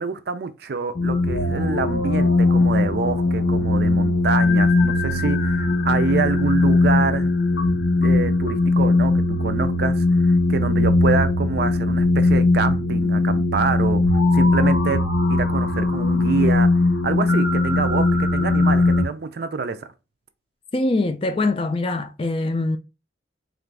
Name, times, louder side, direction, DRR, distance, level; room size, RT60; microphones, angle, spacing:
voice 1, 0.0-7.3 8.0-9.1 9.4-15.0 15.3-16.7 17.0-19.9, right 4 dB, 55° right, 0.4 m, -26 dB
sound 1, 0.9-19.0, left 2 dB, 75° left, 0.8 m, -19 dB
voice 2, 20.7-22.8, left 2 dB, 30° left, 0.3 m, -23 dB
3.8 x 2.5 x 3.2 m
head